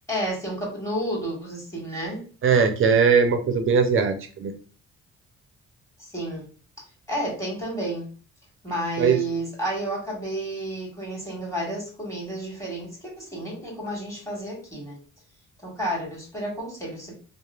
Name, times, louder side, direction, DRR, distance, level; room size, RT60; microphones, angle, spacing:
voice 1, 0.1-2.2 6.0-6.5 7.1-8.1 8.6-15.0 15.6-17.1, right 1 dB, 10° left, -3 dB, 1.4 m, -31 dB
voice 2, 2.4-4.5 9.0-9.2, right 6 dB, 45° right, 6 dB, 0.5 m, -20 dB
3.0 x 2.0 x 2.3 m, 0.39 s
cardioid pair, 90°, 30 cm